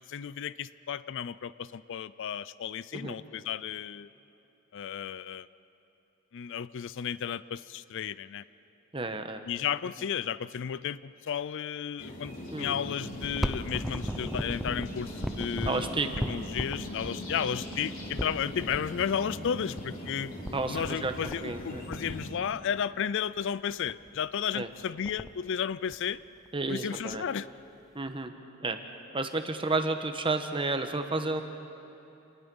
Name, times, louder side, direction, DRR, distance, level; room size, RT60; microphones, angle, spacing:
voice 1, 0.1-4.1 4.7-5.5 6.3-8.4 9.5-15.9 16.3-20.3 20.7-26.2 26.7-27.5, left 8 dB, 60° left, 17 dB, 0.4 m, -33 dB
voice 2, 8.9-9.4 12.5-12.7 15.6-16.1 20.5-21.1 21.4-21.8 24.5-24.7 26.5-27.2 27.9-28.3 28.6-28.8 29.1-31.4, right 3 dB, 25° right, 7 dB, 1.2 m, -31 dB
sound 1, 12.0-22.3, equal, 40° left, 3.6 m, -40 dB
sound 2, 13.1-18.8 19.7-19.8 20.1-20.2 20.4-21.0 21.3-21.7 21.9-22.8 23.4-23.5 23.9-24.2 24.5-24.6 24.8-25.4 25.9-26.7 27.1-27.2 28.1-28.2, equal, ahead, 0.8 m, -36 dB
28.5 x 20.0 x 5.4 m, 2.8 s
head